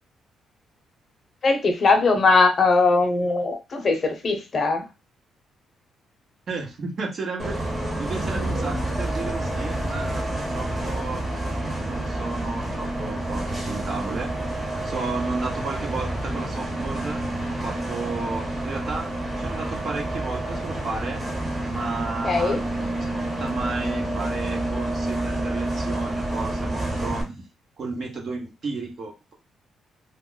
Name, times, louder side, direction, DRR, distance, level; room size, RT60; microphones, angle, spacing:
voice 1, 1.4-4.8 22.2-22.6, left 3 dB, 45° left, 5 dB, 0.7 m, -20 dB
voice 2, 6.5-7.6 8.0-11.2 11.9-14.3 14.8-17.2 17.5-19.1 19.4-21.2 21.7-22.9 23.4-27.4 27.8-29.3, right 3 dB, 50° right, 1 dB, 1.0 m, -33 dB
Bus, 7.4-27.2, right 1 dB, 20° right, 1.0 m, -28 dB
2.3 x 2.1 x 3.7 m, 0.26 s
cardioid pair, 90°, 0 cm